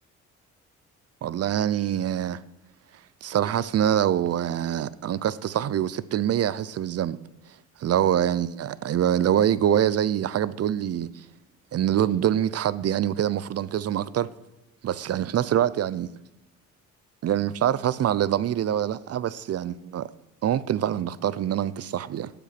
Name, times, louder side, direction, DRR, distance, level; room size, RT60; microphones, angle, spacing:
voice 1, 1.2-2.4 3.2-7.2 7.8-11.1 11.7-14.3 14.8-16.2 17.2-20.1 20.4-22.3, right 10 dB, 55° right, 0.6 m, -25 dB
17.5 x 7.0 x 5.9 m
cardioid pair, 90°, 30 cm